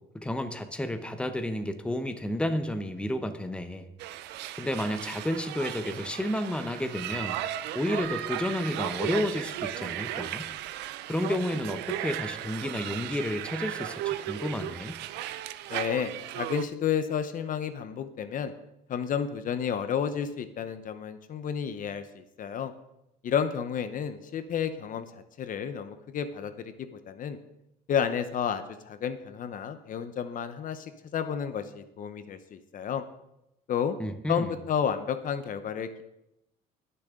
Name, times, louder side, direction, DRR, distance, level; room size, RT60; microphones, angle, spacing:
voice 1, 0.1-3.9 4.6-7.4 7.7-10.5 11.1-15.0 34.0-34.5, left 1 dB, 5° left, 8 dB, 0.9 m, -31 dB
sound 1, 4.0-16.6, right 12 dB, 85° right, 0.6 m, -35 dB
voice 2, 15.7-18.5 18.9-22.7 23.2-25.1 25.4-27.4 27.9-33.0 33.7-33.9 34.3-36.0, left 8 dB, 50° left, 10 dB, 0.9 m, -31 dB
20.0 x 6.9 x 3.7 m, 0.86 s
cardioid pair, 110°, 17 cm